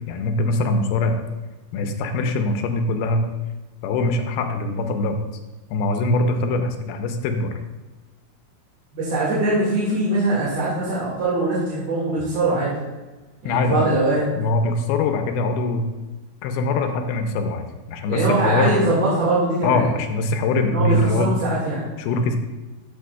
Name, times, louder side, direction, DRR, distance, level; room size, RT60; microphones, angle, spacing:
voice 1, 0.1-1.2 1.7-3.3 3.8-5.2 5.7-7.6 13.5-13.9 14.4-15.9 16.4-18.8 19.6-21.4 22.0-22.4, left 2 dB, 90° left, 6 dB, 2.6 m, -22 dB
voice 2, 8.9-12.7 13.4-14.2 18.1-19.8 20.7-21.9, right 2 dB, 50° right, -8 dB, 2.6 m, -22 dB
12.5 x 6.9 x 2.3 m, 1.2 s
omnidirectional pair, 4.3 m